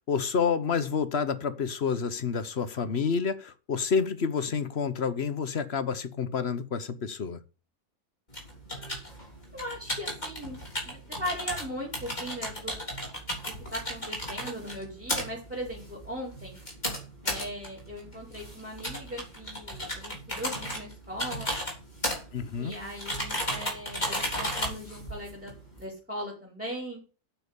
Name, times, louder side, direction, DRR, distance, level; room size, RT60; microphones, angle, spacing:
voice 1, 0.0-7.4 22.3-22.7, left 6 dB, 50° left, 1.1 m, -29 dB
sound 1, 8.3-25.8, equal, 30° left, 3.7 m, -35 dB
voice 2, 8.7-9.0 9.5-10.6 10.8-12.8 13.7-16.6 17.2-21.5 22.6-27.0, equal, 5° right, 4.9 m, -39 dB
8.9 x 6.8 x 8.3 m
omnidirectional pair, 1.6 m